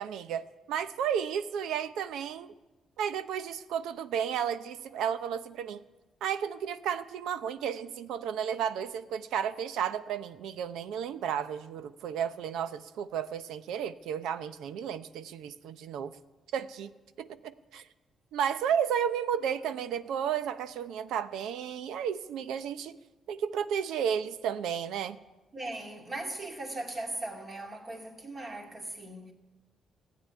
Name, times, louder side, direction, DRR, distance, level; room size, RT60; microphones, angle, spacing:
voice 1, 0.0-2.5 3.0-5.8 6.2-16.1 16.5-16.9 17.2-17.8 18.3-23.0 23.3-25.2, right 8 dB, 85° right, 0.7 m, -33 dB
voice 2, 25.5-29.3, right 2 dB, 30° right, 2.6 m, -39 dB
16.0 x 8.7 x 9.8 m
cardioid pair, 120°, 0 cm